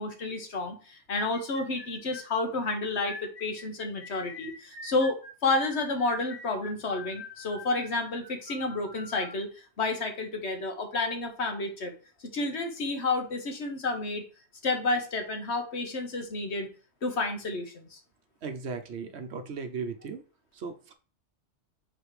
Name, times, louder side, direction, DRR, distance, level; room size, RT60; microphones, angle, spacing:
voice 1, 0.0-3.1 3.4-5.1 5.4-9.5 9.8-11.9 12.3-14.2 14.6-16.7 17.0-18.0, left 3 dB, 65° left, 5 dB, 1.4 m, -30 dB
sound 1, 1.3-9.4, left 2 dB, 20° left, 1.3 m, -44 dB
voice 2, 18.4-20.2 20.5-20.9, right 5 dB, 65° right, 8 dB, 1.1 m, -37 dB
5.1 x 4.2 x 4.7 m, 0.37 s
omnidirectional pair, 1.2 m